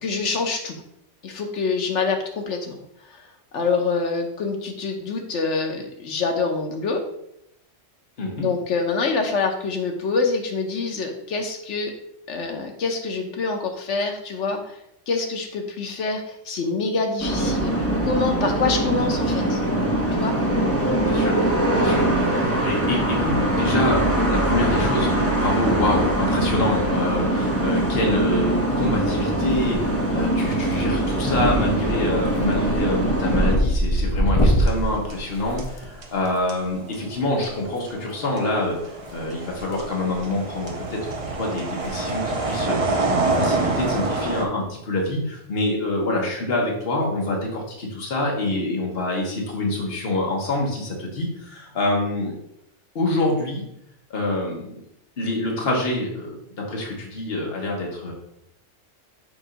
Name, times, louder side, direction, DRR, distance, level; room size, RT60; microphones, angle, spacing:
voice 1, 0.0-0.8 1.2-2.8 3.1-7.0 8.3-11.9 12.3-14.8 15.1-19.6 20.1-20.4, left 4 dB, 75° left, 3 dB, 1.2 m, -26 dB
voice 2, 8.2-8.5 21.0-21.4 21.7-38.8 39.1-52.3 52.9-53.6 54.1-54.8 55.2-58.1, left 1 dB, 55° left, -1 dB, 1.4 m, -26 dB
sound 1, 17.2-33.6, right 1 dB, 15° left, 1.0 m, -22 dB
sound 2, 29.5-30.1 30.4-30.9 31.3-31.6 31.9-36.3 37.7-37.8 39.0-39.8 40.1-40.3 40.9-41.0 41.2-41.3 41.7-41.9 42.2-42.3 43.8-44.1, equal, 35° left, 0.6 m, -24 dB
sound 3, 34.5-35.3 35.6-44.5, right 2 dB, 35° right, 0.6 m, -27 dB
6.9 x 2.7 x 5.1 m, 0.78 s
omnidirectional pair, 1.2 m